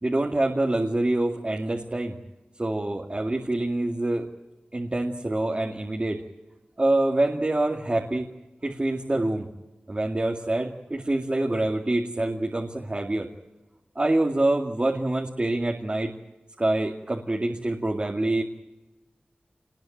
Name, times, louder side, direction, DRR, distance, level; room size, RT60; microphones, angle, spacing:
voice 1, 0.0-2.2 2.6-4.3 4.7-6.2 6.8-8.3 8.6-9.5 9.9-13.3 14.0-16.1 16.6-18.4, right 2 dB, 35° right, 0 dB, 2.3 m, -26 dB
27.5 x 20.0 x 9.2 m, 1.1 s
wide cardioid pair, 75°, 3 cm